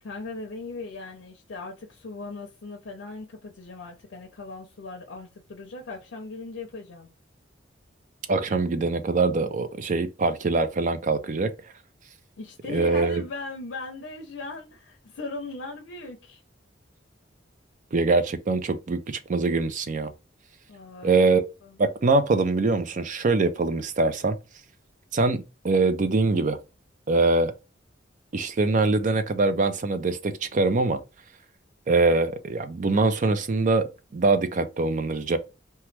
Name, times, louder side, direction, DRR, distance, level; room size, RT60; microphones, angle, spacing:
voice 1, 0.0-7.1 12.4-16.4 20.7-21.8, left 3 dB, 80° left, 0.6 m, -38 dB
voice 2, 8.3-11.5 12.7-13.2 17.9-20.1 21.0-21.4 21.8-24.4 25.1-26.6 27.1-27.5 28.3-31.0 31.9-35.4, right 3 dB, 40° right, 0.4 m, -23 dB
2.9 x 2.2 x 3.2 m
head